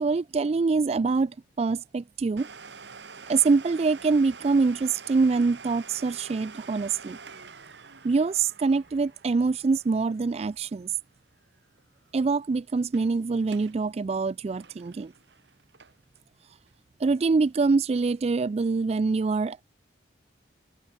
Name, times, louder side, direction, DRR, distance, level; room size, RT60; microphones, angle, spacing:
voice 1, 0.0-2.5 3.3-7.2 8.0-10.9 12.1-15.1 17.0-19.6, right 4 dB, 35° right, 0.3 m, -25 dB
Domestic sounds home sounds, 2.4-11.8 12.1-12.2 12.7-13.1 13.4-13.8 14.1-16.2 16.7-16.8 17.4-17.5, right 5 dB, 65° right, 1.7 m, -47 dB
head